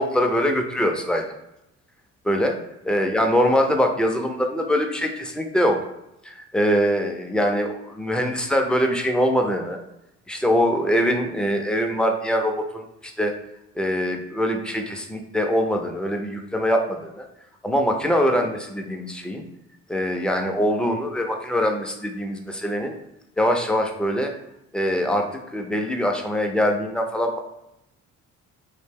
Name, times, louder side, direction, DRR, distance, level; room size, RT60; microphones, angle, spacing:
voice 1, 0.0-1.3 2.2-2.6 2.9-5.8 6.2-9.8 10.3-13.3 13.8-17.3 17.6-19.4 19.9-22.9 23.4-24.3 24.7-27.4, equal, 5° left, 3 dB, 0.3 m, -23 dB
2.5 x 2.1 x 3.4 m, 0.87 s
cardioid pair, 90°, 30 cm